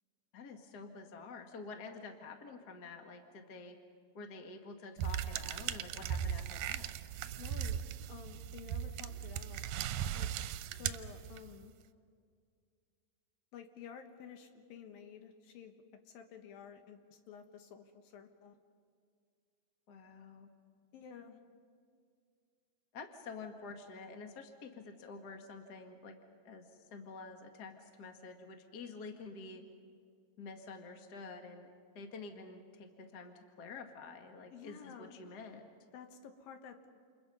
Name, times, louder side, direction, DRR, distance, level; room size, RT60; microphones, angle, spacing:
voice 1, 0.3-3.8 4.1-6.9 19.9-20.5 22.9-26.1 26.4-29.6 30.4-31.7 31.9-35.7, left 4 dB, 35° left, 4 dB, 1.8 m, -49 dB
sound 1, 5.0-11.6, right 10 dB, 75° right, 2.2 m, -38 dB
voice 2, 7.4-7.8 8.1-9.7 10.1-10.3 10.8-11.7 13.5-15.7 16.1-18.6 20.9-21.4 34.5-35.2 35.9-36.8, left 7 dB, 80° left, 6 dB, 3.1 m, -52 dB
29.0 x 28.5 x 5.5 m, 2.2 s
omnidirectional pair, 4.1 m